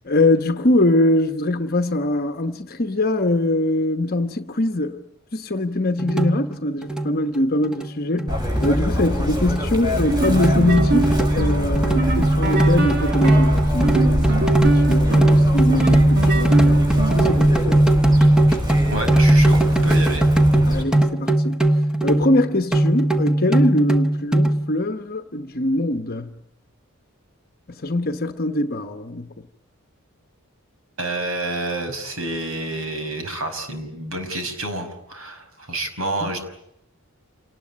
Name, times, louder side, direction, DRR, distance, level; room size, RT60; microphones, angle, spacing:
voice 1, 0.0-5.0 5.3-17.8 20.7-21.6 22.0-26.3 27.7-29.3 36.2-36.4, left 1 dB, 45° left, 1.1 m, -23 dB
sound 1, 6.0-6.5 6.8-7.2 7.6-7.9 8.2-8.9 9.5-9.6 10.0-24.7, right 1 dB, 5° right, 1.2 m, -18 dB
Chirp tweet, 8.3-20.8, left 1 dB, 20° right, 5.8 m, -25 dB
sound 2, 10.0-17.4, right 3 dB, 50° right, 1.3 m, -26 dB
voice 2, 18.9-20.2 31.0-36.4, right 1 dB, 70° right, 5.5 m, -28 dB
28.5 x 19.5 x 9.8 m
head